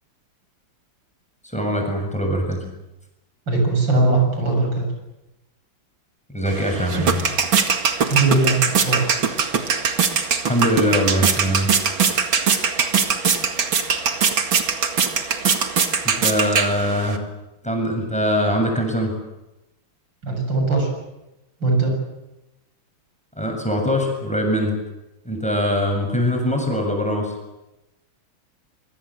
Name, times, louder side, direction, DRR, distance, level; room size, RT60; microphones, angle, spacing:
voice 1, 1.5-2.6 6.3-7.2 10.5-11.7 16.0-17.2 17.6-19.1 23.4-24.8 25.2-27.3, equal, 5° left, 2 dB, 7.5 m, -22 dB
voice 2, 3.5-4.9 8.1-9.1 20.2-20.9 21.6-21.9, right 3 dB, 70° right, 3 dB, 8.1 m, -20 dB
sound 1, 6.5-17.2, right 6 dB, 90° right, 2.8 m, -21 dB
26.5 x 23.5 x 7.8 m, 0.94 s
omnidirectional pair, 2.1 m